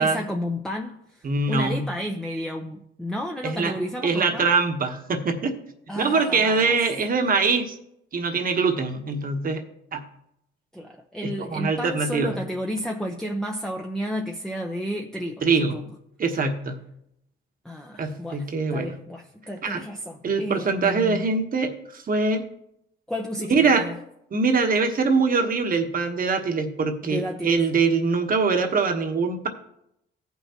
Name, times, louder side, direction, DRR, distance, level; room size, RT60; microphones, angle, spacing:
voice 1, 0.0-4.5 5.9-6.8 10.7-15.8 17.6-21.3 23.1-24.0 27.1-27.6, equal, 5° left, 2 dB, 0.7 m, -32 dB
voice 2, 1.2-1.8 3.4-3.7 4.0-5.5 6.0-7.8 8.1-9.6 9.9-10.0 11.2-12.4 15.4-15.8 16.2-16.8 18.0-19.0 19.6-19.8 20.2-22.4 23.5-23.9 24.3-29.5, right 4 dB, 45° right, 5 dB, 1.2 m, -23 dB
16.0 x 5.7 x 2.9 m, 0.79 s
cardioid pair, 90°, 20 cm